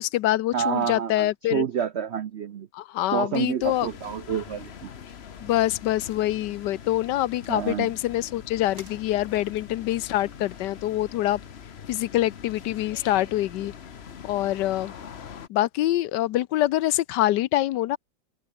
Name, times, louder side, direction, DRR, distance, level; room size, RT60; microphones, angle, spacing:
voice 1, 0.0-1.6 2.7-3.9 5.4-11.4 11.9-13.7 14.2-14.9 15.5-18.0, left 14 dB, 75° left, 1.2 m, -25 dB
voice 2, 0.5-2.7 3.1-4.9 7.5-7.9, right 8 dB, 75° right, 0.6 m, -28 dB
sound 1, 3.4-11.6, right 2 dB, 55° right, 7.0 m, -59 dB
sound 2, 3.6-15.5, left 7 dB, 45° left, 1.0 m, -43 dB
omnidirectional pair, 2.0 m